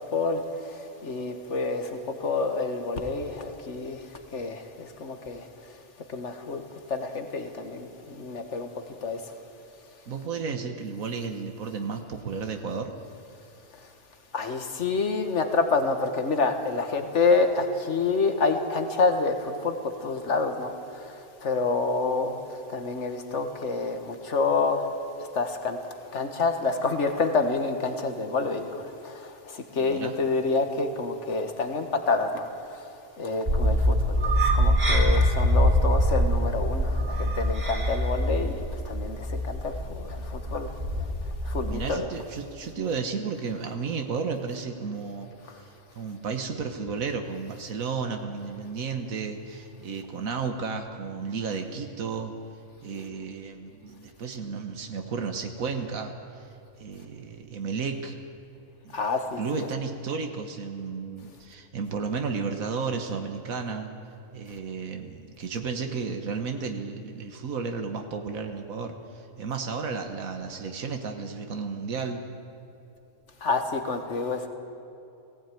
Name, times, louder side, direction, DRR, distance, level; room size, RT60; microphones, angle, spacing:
voice 1, 0.1-0.4 0.7-4.0 4.3-5.5 6.1-6.6 6.9-8.7 9.0-9.2 14.3-19.8 20.0-22.4 22.7-24.9 25.3-25.8 26.1-32.9 33.2-41.1 41.4-42.1 58.9-59.7 73.4-74.5, left 4 dB, 60° left, 6 dB, 1.9 m, -28 dB
voice 2, 10.1-12.9 29.8-30.1 41.6-45.3 45.6-45.7 45.9-52.3 52.8-56.5 56.8-58.2 58.8-59.0 59.4-63.9 64.3-72.2, right 5 dB, 90° right, 5 dB, 1.7 m, -33 dB
sound 1, 33.4-41.9, equal, 45° right, 3.2 m, -24 dB
19.0 x 16.0 x 9.3 m, 2.8 s
omnidirectional pair, 1.4 m